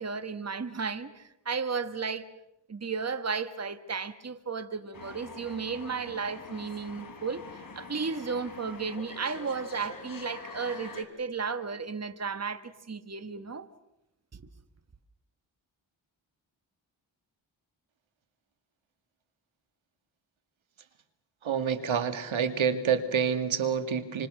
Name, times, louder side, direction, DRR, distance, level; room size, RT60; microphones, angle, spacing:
voice 1, 0.0-2.3 2.7-7.4 7.7-13.7 14.3-14.4, right 5 dB, 35° right, 1.6 m, -34 dB
sound 1, 4.9-11.0, left 3 dB, 45° left, 4.8 m, -45 dB
voice 2, 21.4-24.3, right 7 dB, 80° right, 2.2 m, -28 dB
28.5 x 26.0 x 6.4 m
cardioid pair, 70°, 47 cm